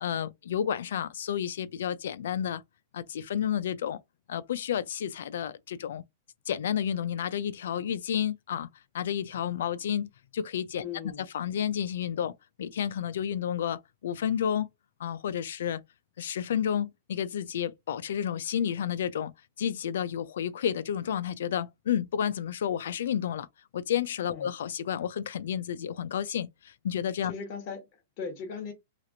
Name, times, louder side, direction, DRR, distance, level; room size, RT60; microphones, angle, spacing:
voice 1, 0.0-2.6 2.9-4.0 4.3-6.0 6.5-8.7 8.9-10.8 11.2-14.7 15.0-15.8 16.2-19.3 19.6-23.5 23.7-27.3, left 9 dB, 80° left, 0.4 m, -31 dB
voice 2, 10.8-11.3 24.3-24.5 27.2-28.7, left 6 dB, 40° left, 1.1 m, -38 dB
2.9 x 2.5 x 2.7 m
supercardioid pair, 155°, 0 cm